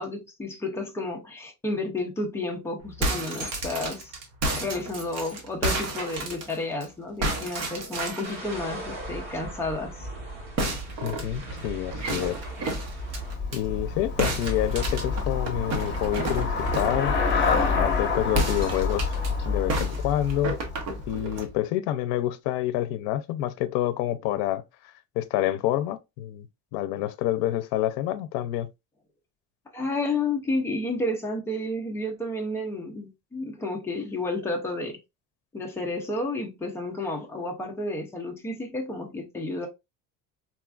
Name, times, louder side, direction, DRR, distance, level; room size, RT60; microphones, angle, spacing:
voice 1, 0.0-4.1 4.5-10.1 29.7-35.0 35.5-39.7, left 2 dB, 10° left, 0.4 m, -31 dB
sound 1, 2.8-6.8 7.2-8.4 10.6-13.6 14.2-17.0 18.3-19.3 19.7-21.5, right 2 dB, 45° right, 0.8 m, -31 dB
sound 2, 8.2-13.4, right 1 dB, 70° right, 2.1 m, -38 dB
voice 2, 11.0-12.4 13.5-17.1 17.5-19.1 19.4-20.6 21.1-24.6 25.2-26.5 26.7-28.7, left 13 dB, 80° left, 0.5 m, -28 dB
Traffic noise roadway noise / Bicycle, 12.3-21.5, left 4 dB, 30° left, 1.1 m, -28 dB
4.1 x 2.4 x 2.3 m
cardioid pair, 175°, 36 cm